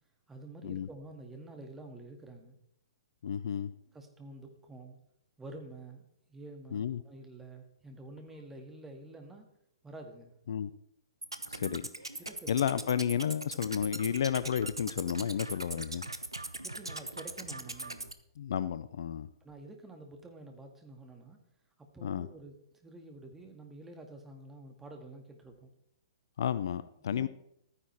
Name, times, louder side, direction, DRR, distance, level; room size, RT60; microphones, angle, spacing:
voice 1, 0.3-2.6 3.9-5.0 5.4-6.0 6.3-9.5 9.8-10.3 12.2-12.7 16.6-18.1 19.4-21.4 21.8-22.5 22.8-25.7 27.1-27.3, right 2 dB, 10° right, 3 dB, 2.0 m, -49 dB
voice 2, 3.2-3.7 6.7-7.0 10.5-10.7 11.5-11.8 12.5-16.0 18.4-19.3 22.0-22.3 26.4-27.3, left 9 dB, 55° left, 14 dB, 0.5 m, -32 dB
sound 1, 11.2-18.1, right 2 dB, 85° right, 0.9 m, -41 dB
13.5 x 9.8 x 4.6 m, 0.75 s
figure-of-eight pair, 115°, 2 cm